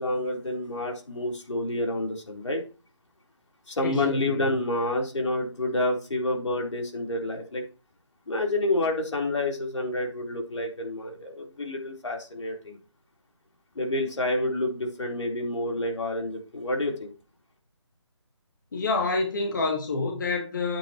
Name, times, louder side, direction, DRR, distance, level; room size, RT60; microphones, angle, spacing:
voice 1, 0.0-2.6 3.7-7.6 8.3-12.8 13.7-17.1, left 1 dB, 80° left, 3.9 m, -29 dB
voice 2, 3.8-4.5 18.7-20.8, left 3 dB, 40° left, 1.7 m, -27 dB
11.5 x 8.8 x 3.1 m
hypercardioid pair, 175°, 15 cm